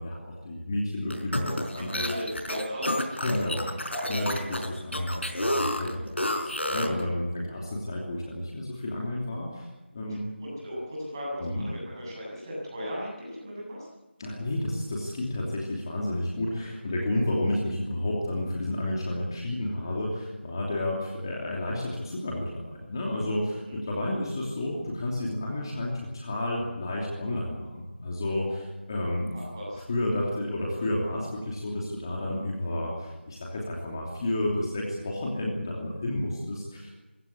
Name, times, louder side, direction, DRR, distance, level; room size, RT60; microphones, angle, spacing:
voice 1, 0.0-2.0 3.2-10.3 11.4-11.7 14.2-29.4 29.7-36.9, left 1 dB, 20° left, -3 dB, 3.0 m, -31 dB
sound 1, 1.1-7.0, left 1 dB, 80° left, 4.9 m, -30 dB
voice 2, 1.8-3.4 10.4-13.9 23.7-24.0 29.3-29.9, equal, 20° right, -4 dB, 7.6 m, -37 dB
24.0 x 16.5 x 8.6 m, 1.1 s
figure-of-eight pair, 170°, 6 cm